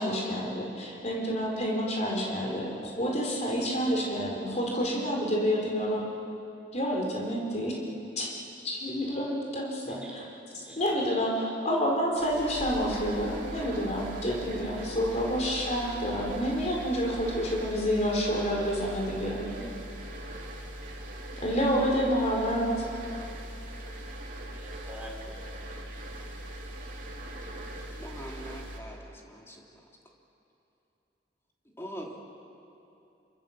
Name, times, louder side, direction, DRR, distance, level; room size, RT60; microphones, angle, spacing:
voice 1, 0.0-6.0 6.7-7.8 8.2-8.3 8.6-10.2 10.8-19.5 21.4-22.7, equal, 35° left, -1 dB, 4.5 m, -29 dB
voice 2, 9.8-10.8 11.1-11.2 11.5-11.6 19.3-20.0 24.5-25.4, equal, 5° right, -3 dB, 4.5 m, -46 dB
sound 1, 12.2-28.8, right 1 dB, 45° right, 3.4 m, -41 dB
voice 3, 28.0-29.6 31.8-32.2, equal, 15° left, -1 dB, 3.0 m, -42 dB
29.5 x 24.5 x 7.4 m, 2.8 s
head